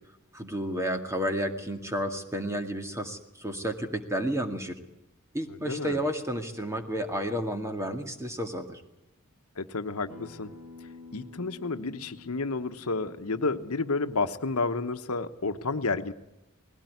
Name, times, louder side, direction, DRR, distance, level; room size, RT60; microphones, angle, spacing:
voice 1, 0.3-4.8 5.3-8.8, equal, 15° right, 5 dB, 2.1 m, -31 dB
voice 2, 5.6-6.0 9.6-10.5 11.1-16.1, left 3 dB, 85° left, 9 dB, 1.1 m, -31 dB
Acoustic guitar, 10.1-15.3, left 3 dB, 80° right, 7.3 m, -51 dB
20.0 x 16.5 x 9.4 m, 0.91 s
head